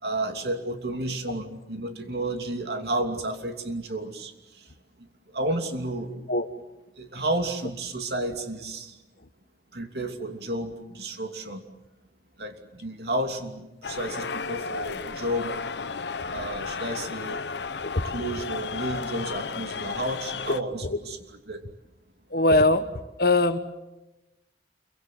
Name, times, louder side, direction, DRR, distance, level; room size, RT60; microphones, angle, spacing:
voice 1, 0.0-4.3 5.3-6.1 7.0-9.0 9.7-11.6 12.4-15.5 16.3-17.4 18.0-21.6, right 1 dB, 65° right, 5 dB, 2.9 m, -31 dB
sound 1, 13.8-20.6, left 4 dB, 75° left, 0.9 m, -33 dB
voice 2, 22.3-22.8 23.2-23.6, left 2 dB, 60° left, 10 dB, 1.5 m, -21 dB
28.0 x 24.0 x 7.7 m, 1.0 s
head